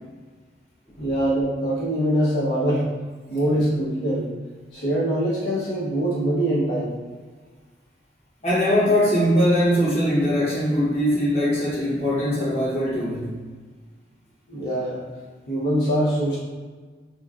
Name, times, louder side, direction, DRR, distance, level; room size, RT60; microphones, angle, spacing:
voice 1, 1.0-2.9 3.3-4.3 4.7-6.9 14.5-15.0 15.5-16.4, right 1 dB, 80° left, -7 dB, 0.9 m, -23 dB
voice 2, 8.4-13.3, equal, 35° left, -8 dB, 1.2 m, -21 dB
3.7 x 2.9 x 2.4 m, 1.4 s
head